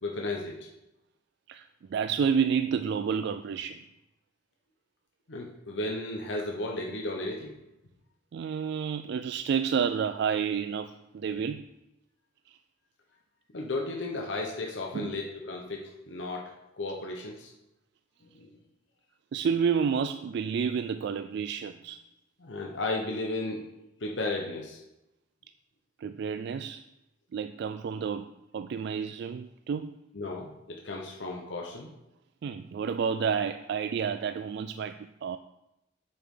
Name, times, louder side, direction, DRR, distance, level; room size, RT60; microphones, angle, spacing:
voice 1, 0.0-0.7 5.3-7.5 13.5-17.5 18.2-18.5 22.4-23.6 24.0-24.8 30.1-31.9, left 2 dB, 70° left, 0 dB, 1.0 m, -34 dB
voice 2, 1.5-3.8 8.3-11.7 12.5-12.6 14.9-15.1 19.3-22.0 26.0-26.8 27.3-29.9 32.4-35.4, right 6 dB, 60° right, 10 dB, 0.3 m, -30 dB
8.6 x 6.7 x 3.7 m, 0.90 s
head